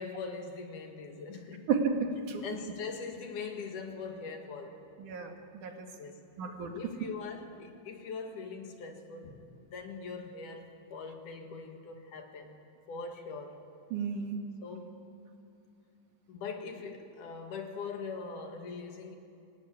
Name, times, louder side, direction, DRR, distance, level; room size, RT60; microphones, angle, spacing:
voice 1, 0.0-1.7 2.4-4.8 5.6-6.2 6.8-12.6 12.9-13.6 14.6-15.0 16.3-19.2, left 4 dB, 85° left, 5 dB, 3.3 m, -42 dB
voice 2, 1.7-2.4 5.0-5.9 6.4-6.7 13.9-14.4, right 5 dB, 80° right, 4 dB, 3.4 m, -32 dB
25.5 x 18.0 x 9.5 m, 2.6 s
omnidirectional pair, 3.5 m